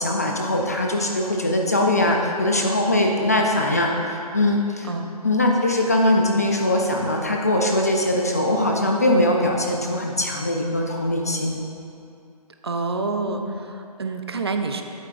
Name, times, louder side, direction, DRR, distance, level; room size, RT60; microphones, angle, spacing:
voice 1, 0.0-4.9 5.2-11.6 13.3-13.6, left 1 dB, 25° left, 0 dB, 0.4 m, -21 dB
voice 2, 12.6-14.8, right 4 dB, 40° right, 5 dB, 0.4 m, -28 dB
8.4 x 8.0 x 2.5 m, 2.6 s
hypercardioid pair, 170°, 20 cm